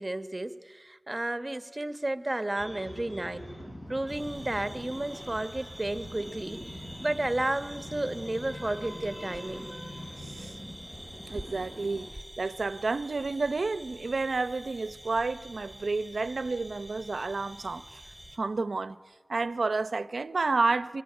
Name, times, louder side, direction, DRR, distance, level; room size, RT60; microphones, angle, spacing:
voice 1, 0.0-3.4 3.9-6.6 7.0-9.7, right 1 dB, 30° right, 1.2 m, -32 dB
sound 1, 2.6-12.1, equal, 40° left, 7.3 m, -43 dB
sound 2, 4.1-18.4, right 1 dB, 10° right, 3.1 m, -47 dB
voice 2, 10.2-10.5 11.3-12.1 12.4-17.8 18.4-19.0 19.3-21.0, right 3 dB, 75° right, 0.8 m, -30 dB
24.5 x 23.5 x 10.0 m
wide cardioid pair, 60°, 0 cm